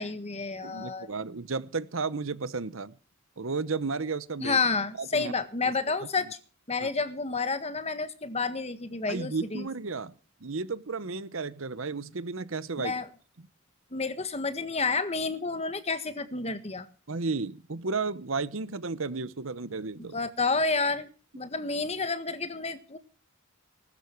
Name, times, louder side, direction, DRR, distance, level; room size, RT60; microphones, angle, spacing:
voice 1, 0.0-1.1 4.4-6.4 6.7-9.7 12.8-13.1 13.9-16.9 20.1-21.1 21.3-23.0, left 4 dB, 30° left, 1.6 m, -30 dB
voice 2, 0.6-2.9 3.4-4.6 5.0-5.3 6.8-6.9 9.1-10.1 10.4-12.9 17.1-20.2, right 4 dB, 65° right, 0.9 m, -33 dB
20.0 x 12.0 x 4.6 m
head